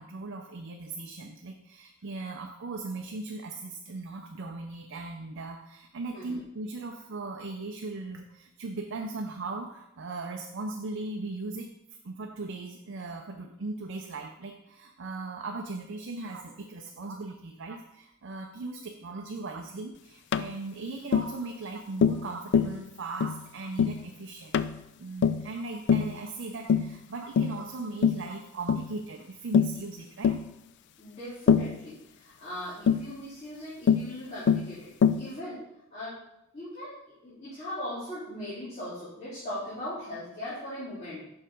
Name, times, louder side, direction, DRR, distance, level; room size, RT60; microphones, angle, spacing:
voice 1, 0.0-11.7 12.0-24.6 25.0-30.4, right 3 dB, 65° right, 3 dB, 0.6 m, -38 dB
Tap, 20.3-20.5 21.1-21.3 22.0-22.3 22.5-22.8 23.2-23.4 23.8-24.0 24.5-24.8 25.2-25.5 25.9-26.1 26.7-26.9 27.4-27.6 28.0-28.3 28.7-28.9 29.5-29.8 30.2-30.4 31.5-31.8 32.9-33.1 33.9-34.1 34.5-34.7 35.0-35.3, left 7 dB, 55° left, 0.3 m, -23 dB
voice 2, 31.0-34.9 35.2-35.6 35.9-36.2 36.5-41.2, left 1 dB, 35° left, -11 dB, 2.5 m, -39 dB
6.1 x 4.8 x 5.2 m, 0.85 s
head